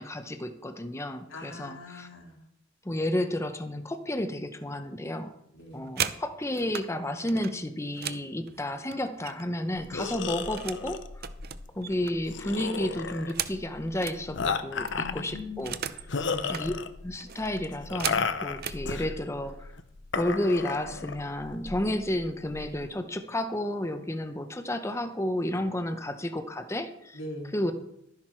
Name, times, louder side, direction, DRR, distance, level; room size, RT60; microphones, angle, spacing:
voice 1, 0.0-2.1 2.8-5.3 5.7-11.3 11.7-15.8 16.5-16.7 17.0-19.7 20.2-27.2 27.5-27.7, left 1 dB, 15° left, 8 dB, 0.7 m, -31 dB
voice 2, 1.3-2.4 5.5-6.0 14.1-14.4 14.9-15.7 16.1-16.7 27.1-27.6, left 1 dB, 90° left, 2 dB, 2.5 m, -42 dB
sound 1, 5.6-6.9 7.3-9.6 9.9-10.9 11.2-14.2 14.6-14.7 14.9-16.1 16.4-16.7 17.2-18.8 19.7-19.8 20.2-20.5 20.8-21.3, right 9 dB, 50° right, 0.7 m, -37 dB
sound 2, 9.8-22.9, left 5 dB, 65° left, 0.8 m, -34 dB
12.5 x 10.5 x 4.4 m, 0.77 s
head